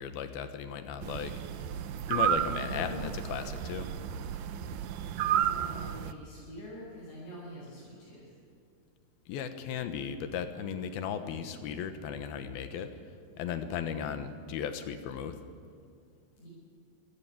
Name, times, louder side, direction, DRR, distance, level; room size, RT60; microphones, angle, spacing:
voice 1, 0.0-1.3 2.1-3.9 9.3-12.9 13.4-15.4, left 7 dB, 70° left, 9 dB, 2.9 m, -36 dB
sound 1, 1.0-6.1, right 10 dB, 80° right, 1.7 m, -32 dB
voice 2, 2.4-3.1 5.2-8.3 16.4-16.5, right 1 dB, 45° left, -7 dB, 7.7 m, -45 dB
25.0 x 17.0 x 9.1 m, 2.3 s
omnidirectional pair, 4.7 m